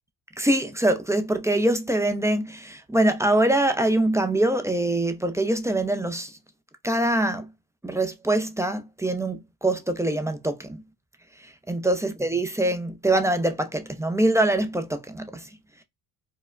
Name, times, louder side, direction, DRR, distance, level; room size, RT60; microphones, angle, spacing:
voice 1, 0.4-6.4 6.8-7.5 7.8-10.8 11.4-15.5, right 1 dB, 5° right, 0.4 m, -24 dB
4.6 x 2.0 x 2.3 m
supercardioid pair, 85°, 42 cm